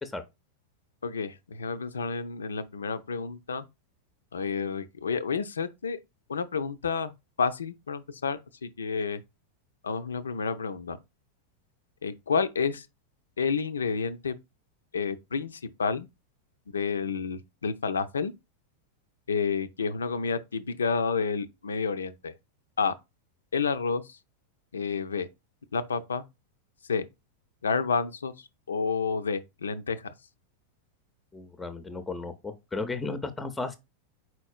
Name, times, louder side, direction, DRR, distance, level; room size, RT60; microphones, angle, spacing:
voice 1, 1.0-3.7 4.3-6.0 6.3-7.1 7.4-9.2 9.8-11.0 12.0-12.9 13.4-14.4 14.9-16.1 16.7-18.3 19.3-22.3 22.8-23.0 23.5-24.2 24.7-25.3 25.7-26.2 26.9-27.1 27.6-28.3 28.7-30.1, left 5 dB, 70° left, 0.4 m, -30 dB
voice 2, 31.3-33.8, left 3 dB, 10° left, 0.5 m, -34 dB
4.4 x 4.0 x 2.4 m
figure-of-eight pair, 90°, 0 cm